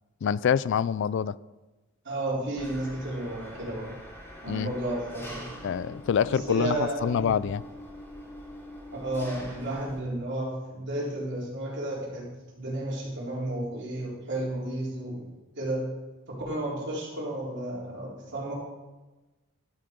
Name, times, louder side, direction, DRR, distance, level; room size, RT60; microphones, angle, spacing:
voice 1, 0.2-1.3 4.5-4.7 5.6-7.6, left 7 dB, 60° left, 19 dB, 0.3 m, -26 dB
voice 2, 2.0-3.9 4.4-5.5 6.2-7.3 8.9-12.2 12.5-15.3 15.6-15.8 16.3-18.5, right 1 dB, 55° right, -4 dB, 3.9 m, -32 dB
Engine, 2.6-10.0, equal, 10° left, 2.9 m, -44 dB
12.5 x 7.4 x 5.2 m, 1.1 s
head